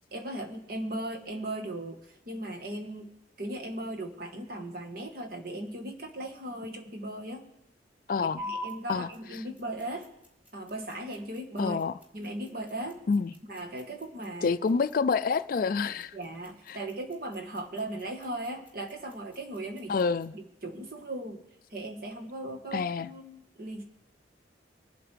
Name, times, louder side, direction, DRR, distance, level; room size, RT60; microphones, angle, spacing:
voice 1, 0.1-3.1 3.4-7.5 8.2-10.1 10.5-11.8 12.1-13.0 13.5-14.6 16.1-19.9 20.3-21.4 21.7-23.8, right 1 dB, 50° right, 5 dB, 1.3 m, -38 dB
voice 2, 8.1-8.4 8.9-9.1 11.6-11.9 13.1-13.3 14.4-16.2 16.7-16.8 19.9-20.3 22.7-23.1, left 5 dB, 50° left, 14 dB, 0.3 m, -27 dB
sound 1, 8.4-20.4, left 1 dB, 10° right, 1.6 m, -47 dB
22.0 x 7.9 x 3.3 m, 0.86 s
head